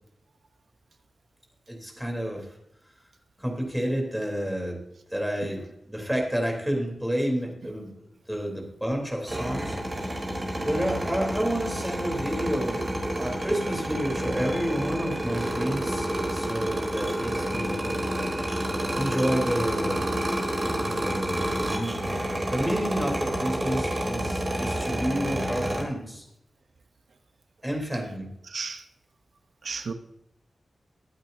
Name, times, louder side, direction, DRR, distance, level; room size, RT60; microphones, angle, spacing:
voice 1, 1.7-2.5 3.4-4.8 5.1-7.9 8.3-9.8 10.6-18.0 18.9-20.1 20.8-26.2 27.6-28.3, equal, 5° right, 3.4 m, -30 dB
sound 1, 9.3-25.8, right 1 dB, 20° right, 3.7 m, -29 dB
voice 2, 19.9-20.2 28.4-28.8 29.6-29.9, right 4 dB, 60° right, 0.9 m, -35 dB
22.5 x 8.9 x 2.7 m
wide cardioid pair, 175°, 0 cm